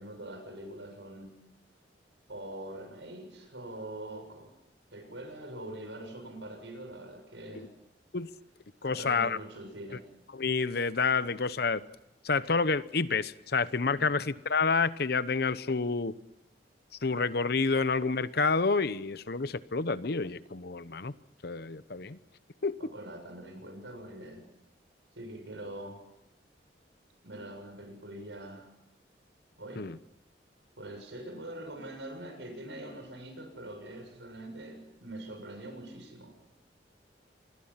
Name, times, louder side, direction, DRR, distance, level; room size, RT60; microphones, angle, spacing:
voice 1, 0.0-1.4 2.3-4.5 4.9-7.7 8.8-10.1 14.0-14.1 22.8-24.4 25.2-26.1 27.2-28.7 29.6-29.9 30.8-36.4, right 1 dB, 85° right, 6 dB, 7.1 m, -43 dB
voice 2, 8.8-9.4 10.3-11.8 12.2-16.1 17.0-21.1 21.4-22.2 22.6-22.8 29.8-30.0, left 4 dB, 60° left, 15 dB, 0.9 m, -29 dB
27.5 x 21.5 x 5.8 m, 0.86 s
head